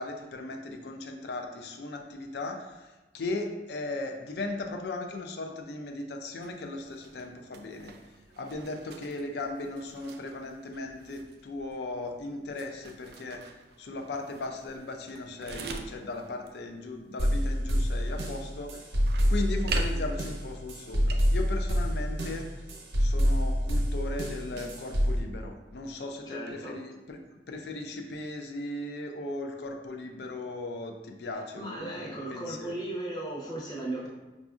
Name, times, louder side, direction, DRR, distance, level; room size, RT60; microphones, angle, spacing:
voice 1, 0.0-7.9 8.4-13.4 13.8-18.8 19.3-22.5 23.0-27.2 27.5-32.7, left 2 dB, 65° left, 4 dB, 0.4 m, -37 dB
sound 1, 6.4-21.3, right 5 dB, 60° right, 0.3 m, -46 dB
sound 2, 17.2-25.2, equal, 80° right, 0.8 m, -27 dB
voice 2, 26.3-26.7 31.6-34.1, right 1 dB, 25° left, -5 dB, 0.8 m, -36 dB
4.9 x 2.4 x 2.4 m, 1.1 s
head